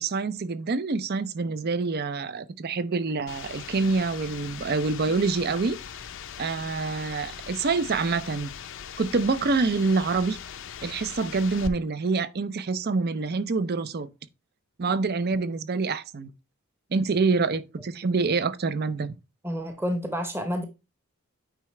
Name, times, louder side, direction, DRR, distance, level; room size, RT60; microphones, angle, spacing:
voice 1, 0.0-5.8 6.4-8.5 9.0-10.4 10.8-14.1 14.8-16.3 16.9-19.2, right 4 dB, 45° right, 0.5 m, -26 dB
sound 1, 3.3-11.7, left 7 dB, 60° left, 0.6 m, -40 dB
voice 2, 19.4-20.7, equal, 10° right, 0.9 m, -29 dB
9.0 x 4.7 x 3.2 m
head